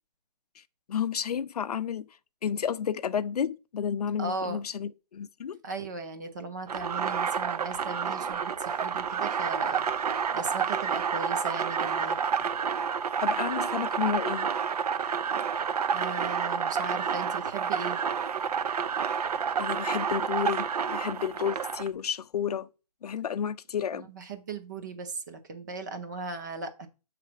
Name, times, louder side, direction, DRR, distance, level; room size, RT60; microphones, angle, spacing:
voice 1, 0.9-2.1 2.4-5.6 13.2-14.5 19.6-22.7 23.0-24.0, left 8 dB, 70° left, 0.5 m, -31 dB
voice 2, 4.2-4.6 5.6-9.8 10.3-12.2 15.9-18.0 23.9-26.9, right 3 dB, 25° right, 0.7 m, -37 dB
sound 1, 6.7-21.9, right 6 dB, 65° right, 0.6 m, -29 dB
6.8 x 3.3 x 6.0 m
hypercardioid pair, 175°, 21 cm